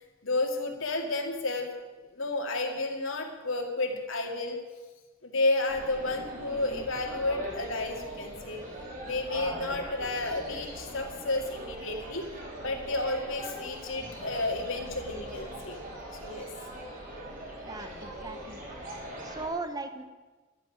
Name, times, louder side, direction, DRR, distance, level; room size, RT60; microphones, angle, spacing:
voice 1, 0.2-1.7 2.1-4.6 5.2-8.6 9.0-12.3 12.6-15.8 16.2-16.5, left 2 dB, 70° left, 2 dB, 2.3 m, -31 dB
sound 1, 5.7-19.5, right 1 dB, 40° right, 3.2 m, -41 dB
voice 2, 17.6-18.7 19.2-20.0, right 3 dB, 20° right, 9 dB, 0.9 m, -38 dB
12.0 x 8.0 x 9.7 m, 1.3 s
head